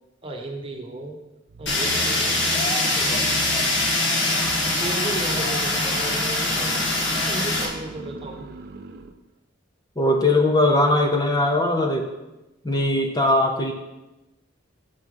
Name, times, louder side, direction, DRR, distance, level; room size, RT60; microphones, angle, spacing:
voice 1, 0.2-1.2 1.6-3.4 4.8-6.8 7.2-8.5 11.1-11.2, right 2 dB, 30° right, 1 dB, 1.2 m, -34 dB
sound 1, 1.5-9.2, right 3 dB, 55° right, 0.5 m, -39 dB
Fire, 1.7-7.7, left 2 dB, 70° left, 1.5 m, -23 dB
voice 2, 10.0-12.1 12.6-13.7, left 1 dB, 20° left, 2 dB, 0.6 m, -20 dB
6.4 x 6.1 x 5.4 m, 1.0 s
head